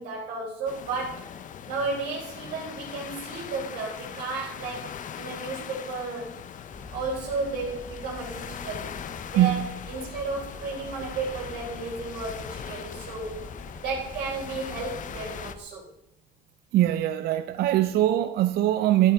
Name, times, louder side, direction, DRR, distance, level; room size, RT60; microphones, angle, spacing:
voice 1, 0.0-1.4 1.7-6.4 6.9-8.9 9.3-13.5 13.8-15.9, right 3 dB, 85° right, 3.9 m, -33 dB
sound 1, 0.7-15.5, left 8 dB, 50° left, 0.7 m, -41 dB
sound 2, 6.7-15.6, left 2 dB, 15° left, 1.1 m, -45 dB
voice 2, 9.4-9.7 16.7-19.1, right 13 dB, 70° right, 0.5 m, -22 dB
12.5 x 8.8 x 3.6 m
cardioid pair, 110°, 17 cm